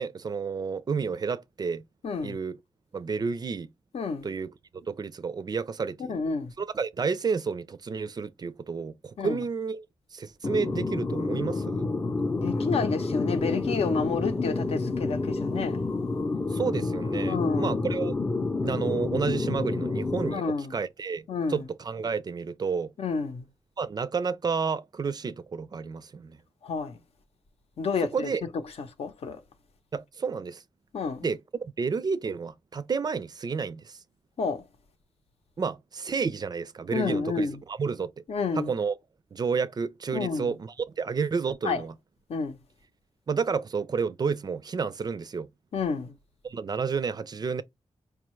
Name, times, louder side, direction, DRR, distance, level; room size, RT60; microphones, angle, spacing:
voice 1, 0.0-1.8 2.2-2.6 2.9-3.7 4.2-4.5 4.8-6.2 6.6-9.8 10.1-11.9 16.5-18.1 18.6-20.4 20.7-21.2 21.5-22.9 23.8-26.4 28.1-28.4 29.9-30.6 31.2-34.0 35.6-38.1 38.6-38.9 39.3-41.9 43.3-45.5 46.4-47.6, right 5 dB, 40° right, 0.4 m, -30 dB
voice 2, 2.0-2.4 3.9-4.3 6.1-6.5 9.2-9.4 12.4-15.8 17.3-17.8 20.3-20.8 21.3-21.6 23.0-23.4 26.6-27.0 27.8-28.3 28.8-29.4 30.9-31.3 34.4-34.6 36.9-37.6 38.3-38.7 40.1-40.6 41.6-41.8 42.3-42.6 45.7-46.1, left 5 dB, 75° left, 0.7 m, -30 dB
sound 1, 10.4-20.3, left 3 dB, 25° left, 0.5 m, -29 dB
4.6 x 2.3 x 3.0 m
wide cardioid pair, 110°, 10 cm